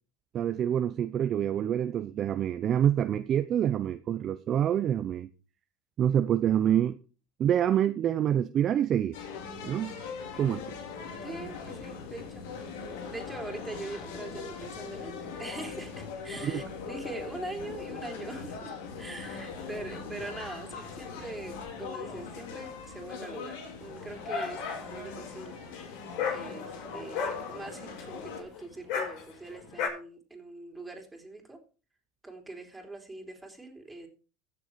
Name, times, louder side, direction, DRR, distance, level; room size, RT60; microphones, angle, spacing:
voice 1, 0.3-5.3 6.0-7.0 7.4-9.2 9.6-9.9 10.4-10.6 16.4-16.6, right 10 dB, 40° right, 0.6 m, -26 dB
sound 1, 9.1-28.4, left 5 dB, 80° left, 3.4 m, -41 dB
voice 2, 11.2-12.4 13.1-23.5 23.8-24.6 24.9-25.6 26.3-31.6 32.2-34.1, right 2 dB, 10° right, 3.5 m, -42 dB
Dog, 23.8-29.9, left 6 dB, 60° left, 6.3 m, -36 dB
15.5 x 7.0 x 4.6 m
supercardioid pair, 115°, 0 cm